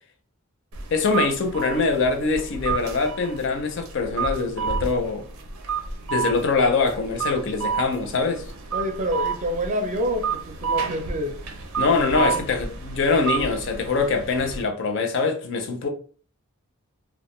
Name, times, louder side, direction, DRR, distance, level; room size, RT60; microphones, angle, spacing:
sound 1, 0.7-14.6, right 6 dB, 85° right, 0.5 m, -31 dB
voice 1, 0.9-5.2 6.1-8.4 11.8-15.9, left 4 dB, 60° left, 0.5 m, -23 dB
voice 2, 8.7-11.4 12.2-12.4, equal, 35° right, 0.4 m, -27 dB
2.3 x 2.1 x 3.0 m
head